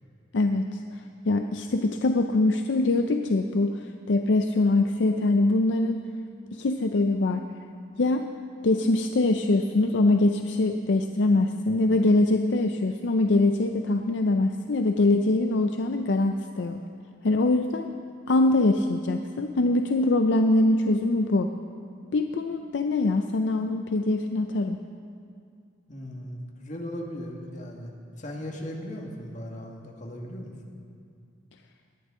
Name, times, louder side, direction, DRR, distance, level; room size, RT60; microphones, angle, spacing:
voice 1, 0.3-6.0 6.5-7.4 8.0-8.3 8.6-16.8 17.2-17.9 18.3-21.5 22.1-24.8, left 2 dB, 70° left, 6 dB, 0.5 m, -23 dB
voice 2, 25.9-27.9 28.2-30.5, equal, 40° left, 0 dB, 1.8 m, -37 dB
19.5 x 11.5 x 3.7 m, 2.3 s
head